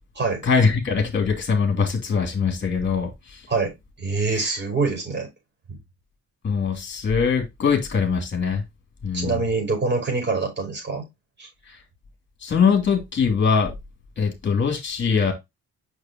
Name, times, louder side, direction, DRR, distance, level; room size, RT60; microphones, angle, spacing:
voice 1, 0.4-3.4 4.3-4.5 6.4-8.6 9.0-9.4 12.4-13.7 14.2-15.3, left 5 dB, 40° left, 2.9 m, -22 dB
voice 2, 3.5-5.3 5.7-5.8 9.1-11.0 11.4-11.5, right 3 dB, 35° right, 5.3 m, -25 dB
6.5 x 6.2 x 3.0 m
cardioid pair, 90°, 30 cm